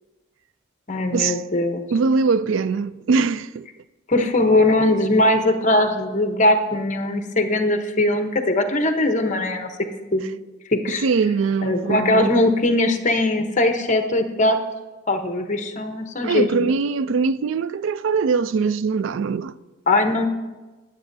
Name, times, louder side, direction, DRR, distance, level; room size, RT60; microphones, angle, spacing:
voice 1, 0.9-1.8 4.1-9.7 10.1-10.2 10.7-11.1 11.6-14.6 15.1-16.7 19.9-20.3, left 2 dB, 40° left, 0.9 m, -20 dB
voice 2, 1.9-3.7 10.9-12.3 16.2-19.5, right 5 dB, 70° right, 0.4 m, -22 dB
23.0 x 8.2 x 2.7 m
head